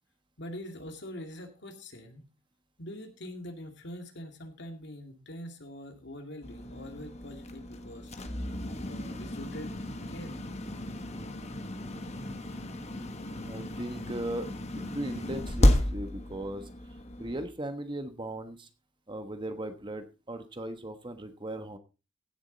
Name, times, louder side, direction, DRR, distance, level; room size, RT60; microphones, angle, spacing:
voice 1, 0.4-2.2 2.8-8.1 8.8-10.3, left 1 dB, 60° left, 5 dB, 2.4 m, -44 dB
sound 1, 6.4-17.5, left 1 dB, 35° left, 1.4 m, -32 dB
voice 2, 13.4-14.5 14.7-18.7 19.1-21.8, right 1 dB, 25° right, 8 dB, 1.2 m, -38 dB
16.0 x 7.4 x 4.1 m, 0.30 s
head